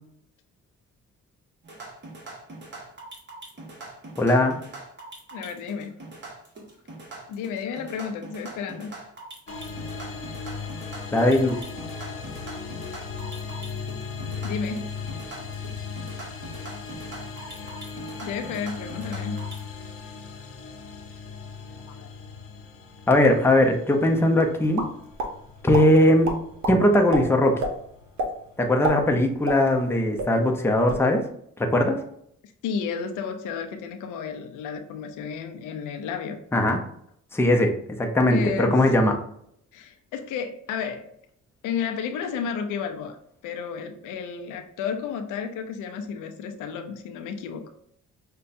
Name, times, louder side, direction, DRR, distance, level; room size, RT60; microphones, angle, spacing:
sound 1, 1.6-19.6, right 2 dB, 35° right, 1.3 m, -42 dB
voice 1, 4.2-4.6 11.1-11.6 23.1-24.8 25.6-26.3 26.7-27.6 28.6-31.2 31.6-32.0 36.5-36.8 37.3-37.7 38.0-39.1, left 1 dB, 10° left, 2 dB, 0.6 m, -19 dB
voice 2, 5.3-6.0 7.3-8.9 14.4-14.9 18.2-19.4 21.9-22.1 32.6-36.4 38.3-38.8 39.7-41.1 41.6-43.2 43.4-47.6, left 6 dB, 90° left, 6 dB, 0.5 m, -32 dB
sound 2, 9.5-28.6, left 5 dB, 45° left, 0.7 m, -38 dB
sound 3, 24.7-25.3 25.7-25.9 26.2-26.8 27.1-27.2 27.6-27.7 28.2-28.3 28.7-29.9 30.2-30.3 30.7-31.0, right 1 dB, 70° right, 0.8 m, -28 dB
5.4 x 2.2 x 2.6 m, 0.70 s
cardioid pair, 90°, 30 cm